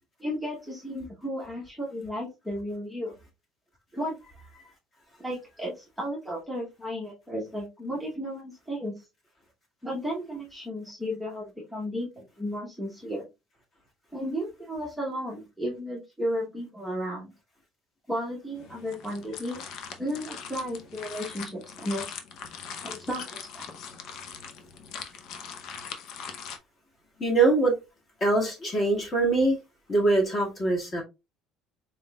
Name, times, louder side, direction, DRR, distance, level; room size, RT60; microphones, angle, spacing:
voice 1, 0.2-3.1 3.9-4.2 5.2-8.9 9.8-13.3 14.1-17.3 18.1-19.6 20.0-22.1 22.8-23.7, equal, ahead, 0.9 m, -34 dB
sound 1, 18.6-26.6, left 6 dB, 55° left, 0.7 m, -41 dB
voice 2, 27.2-27.8 28.2-29.6 29.9-31.0, right 2 dB, 25° left, 1.6 m, -23 dB
4.0 x 3.6 x 2.2 m
cardioid pair, 170°, 0 cm